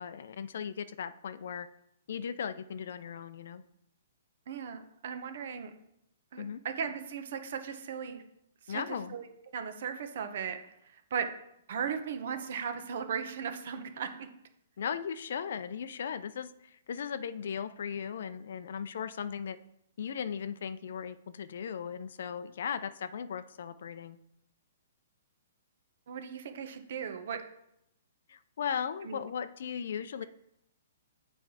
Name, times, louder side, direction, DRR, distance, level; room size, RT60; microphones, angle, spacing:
voice 1, 0.0-1.7 2.1-3.6 6.3-6.6 8.7-9.1 14.8-19.6 20.0-24.2 28.3-30.2, left 7 dB, 65° left, 14 dB, 0.5 m, -37 dB
voice 2, 4.5-5.7 6.3-8.2 8.7-10.7 11.1-11.3 11.7-14.3 26.1-27.4 29.0-29.2, right 7 dB, 55° right, 7 dB, 1.0 m, -37 dB
7.7 x 4.5 x 4.8 m, 0.78 s
hypercardioid pair, 160°, 0 cm